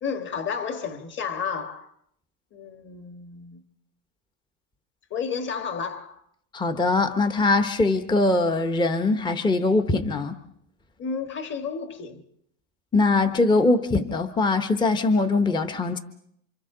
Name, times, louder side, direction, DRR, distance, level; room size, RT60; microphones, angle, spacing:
voice 1, 0.0-1.9 2.5-3.6 5.1-6.2 11.0-12.2, left 6 dB, 25° left, 1.6 m, -32 dB
voice 2, 6.5-10.3 12.9-16.0, left 3 dB, 10° left, 0.9 m, -22 dB
29.0 x 26.0 x 3.8 m
supercardioid pair, 145°, 42 cm